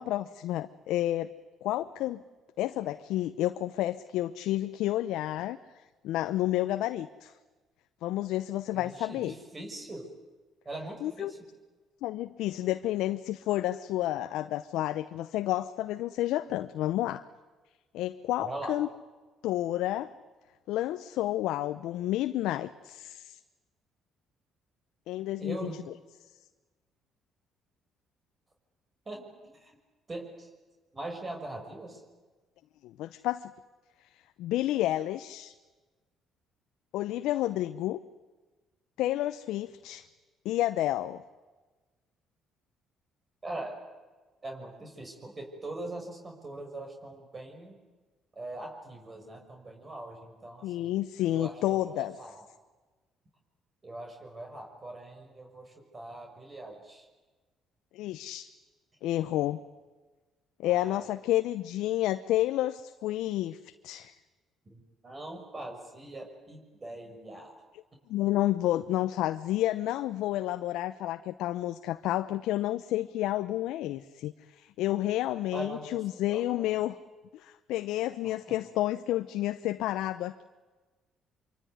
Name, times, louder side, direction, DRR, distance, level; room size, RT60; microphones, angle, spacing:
voice 1, 0.0-1.3 1.6-2.2 2.6-5.6 6.0-7.3 8.0-9.3 11.0-11.3 12.0-17.2 17.9-18.9 19.4-20.1 20.7-23.4 25.1-25.7 32.8-33.5 34.1-35.5 36.9-38.0 39.0-40.1 40.4-41.2 50.6-52.1 57.9-58.5 59.0-59.6 60.6-64.1 68.1-77.0 77.3-80.4, left 14 dB, 75° left, 10 dB, 0.8 m, -30 dB
voice 2, 8.7-10.1 10.6-11.5 18.4-18.8 25.4-25.8 29.0-29.8 30.1-30.5 30.9-32.0 43.4-43.8 44.4-47.8 48.3-50.9 51.3-52.4 53.8-57.1 60.7-61.1 64.7-67.6 75.5-76.0 76.3-76.7 78.2-78.5, right 2 dB, 30° right, 2 dB, 6.4 m, -42 dB
26.0 x 24.0 x 9.6 m, 1.3 s
supercardioid pair, 60°, 0 cm